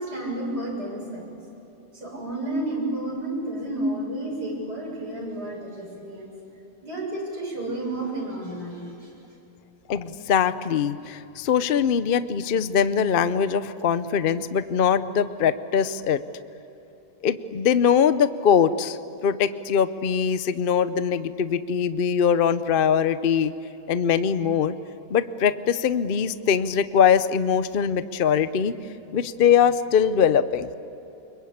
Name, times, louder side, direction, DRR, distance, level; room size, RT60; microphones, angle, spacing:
voice 1, 0.0-1.4 1.9-6.3 6.8-9.1, right 1 dB, 90° right, -3 dB, 7.6 m, -31 dB
voice 2, 9.9-16.2 17.2-19.0 19.2-23.5 23.9-24.7 25.1-28.7 29.1-30.7, left 7 dB, 50° left, 13 dB, 0.7 m, -22 dB
25.5 x 22.5 x 8.6 m, 3.0 s
omnidirectional pair, 1.7 m